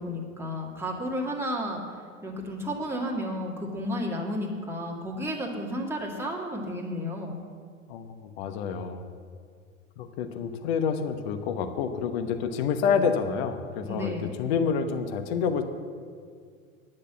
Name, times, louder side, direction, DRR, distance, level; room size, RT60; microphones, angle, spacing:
voice 1, 0.0-7.4 13.9-14.4, equal, 5° right, -3 dB, 1.9 m, -32 dB
voice 2, 7.9-9.1 10.0-15.6, left 6 dB, 45° left, 8 dB, 1.1 m, -28 dB
10.0 x 6.6 x 7.5 m, 2.1 s
figure-of-eight pair, 95°, 42 cm